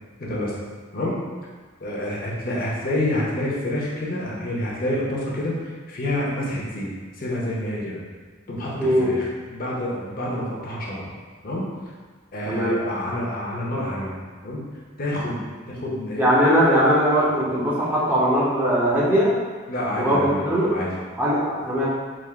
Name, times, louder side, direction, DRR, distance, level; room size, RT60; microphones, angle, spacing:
voice 1, 0.2-0.6 0.9-1.2 1.8-6.9 7.2-8.0 8.5-11.1 11.4-11.7 12.3-14.6 15.0-16.3 19.7-20.9, left 1 dB, 45° left, -5 dB, 0.7 m, -28 dB
voice 2, 8.8-9.1 12.5-12.8 16.2-19.3 20.0-20.7 21.2-21.9, equal, 10° right, -8 dB, 0.6 m, -20 dB
3.6 x 2.4 x 3.4 m, 1.5 s
head